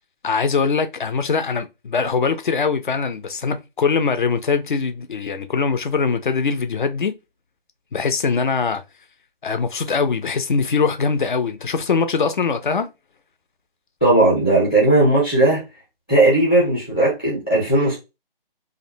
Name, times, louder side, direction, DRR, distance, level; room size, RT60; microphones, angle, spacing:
voice 1, 0.2-7.1 7.9-8.8 9.4-12.9, left 5 dB, 55° left, 0.5 m, -22 dB
voice 2, 14.0-15.6 16.1-18.0, right 2 dB, 10° left, 0.5 m, -17 dB
2.6 x 2.1 x 2.5 m
figure-of-eight pair, 160°, 29 cm